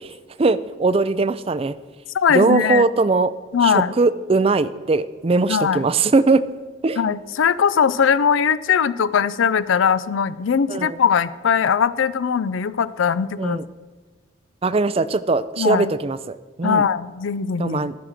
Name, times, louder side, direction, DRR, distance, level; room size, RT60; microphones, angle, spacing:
voice 1, 0.4-1.7 2.3-3.3 3.6-6.4 6.8-7.0 10.7-11.0 13.4-13.6 14.6-16.8 17.6-18.0, right 3 dB, 30° right, 15 dB, 0.4 m, -20 dB
voice 2, 2.1-2.9 3.5-3.9 5.5-5.9 7.0-13.6 15.6-15.9 16.6-17.9, left 7 dB, 70° left, 17 dB, 0.4 m, -20 dB
14.0 x 5.8 x 6.3 m, 1.4 s
head